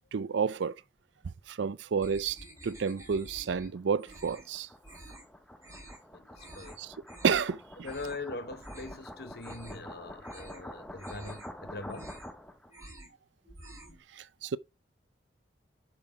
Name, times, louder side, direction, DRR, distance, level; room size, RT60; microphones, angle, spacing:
voice 1, 0.1-0.8 1.5-2.4 2.6-4.7 6.8-6.9 7.2-7.6 14.1-14.6, right 6 dB, 85° right, 0.4 m, -30 dB
sound 1, 2.0-3.7 4.0-4.5 4.8-5.3 5.6-6.0 6.4-6.8 7.1-7.5 7.8-8.2 8.6-9.0 9.3-9.9 10.2-10.6 11.0-11.5 11.8-12.4 12.7-13.2 13.4-14.0, right 1 dB, 15° right, 3.1 m, -50 dB
sound 2, 2.7-12.7, left 1 dB, 5° left, 0.7 m, -47 dB
voice 2, 6.1-6.8 7.8-12.2, left 2 dB, 60° left, 1.1 m, -42 dB
6.9 x 6.0 x 4.8 m
head